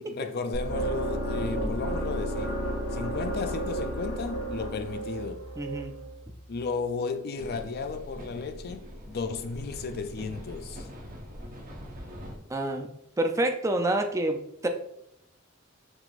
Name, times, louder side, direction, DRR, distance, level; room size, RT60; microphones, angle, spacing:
voice 1, 0.0-2.6 2.9-5.4 6.5-10.9, left 4 dB, 50° left, 0.4 m, -34 dB
sound 1, 0.5-6.6, right 1 dB, 85° left, 1.6 m, -32 dB
voice 2, 5.6-5.9 12.5-12.9 13.2-14.7, right 1 dB, 15° right, 0.4 m, -27 dB
sound 2, 7.4-12.4, equal, 45° right, 0.8 m, -43 dB
5.9 x 3.6 x 2.4 m
head